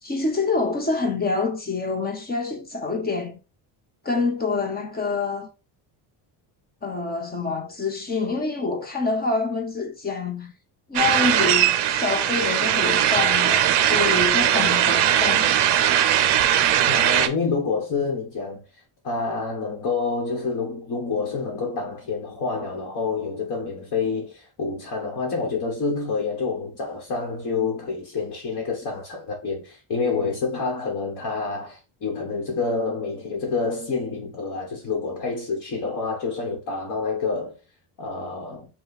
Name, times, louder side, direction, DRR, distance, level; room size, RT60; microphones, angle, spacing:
voice 1, 0.0-3.4 4.0-5.5 6.8-10.5 10.9-15.5, left 3 dB, 20° left, 0.8 m, -26 dB
sound 1, 10.9-17.3, right 11 dB, 55° right, 0.6 m, -20 dB
voice 2, 16.9-18.6 19.0-37.6 38.0-38.7, left 4 dB, 40° left, 1.2 m, -28 dB
5.6 x 2.3 x 4.0 m
cardioid pair, 170°, 50 cm